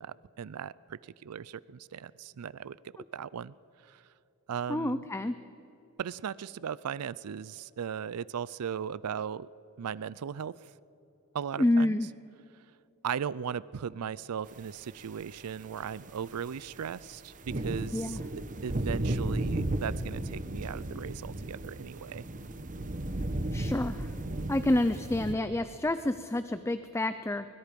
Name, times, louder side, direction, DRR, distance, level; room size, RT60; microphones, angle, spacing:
voice 1, 0.0-2.8 3.1-3.5 3.9-4.0 4.5-5.0 6.0-9.5 9.8-10.6 11.3-12.0 13.0-18.2 18.6-22.2, right 7 dB, 80° right, 20 dB, 0.4 m, -37 dB
voice 2, 4.7-5.4 11.6-12.1 17.9-18.2 23.5-24.1 24.5-27.5, left 1 dB, 10° left, 11 dB, 0.5 m, -28 dB
sound 1, 15.0-15.1 15.6-25.3, right 1 dB, 35° right, 1.0 m, -34 dB
24.0 x 22.0 x 5.3 m, 3.0 s
head